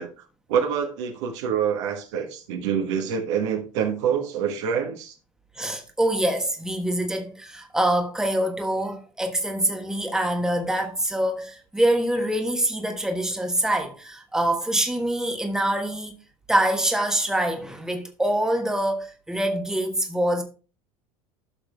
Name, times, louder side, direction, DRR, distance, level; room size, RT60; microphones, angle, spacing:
voice 1, 0.0-5.2, right 7 dB, 55° right, 1.4 m, -26 dB
voice 2, 5.5-16.1 16.5-20.4, right 1 dB, 5° right, 1.3 m, -25 dB
13.0 x 6.7 x 2.3 m
figure-of-eight pair, 75°, 17 cm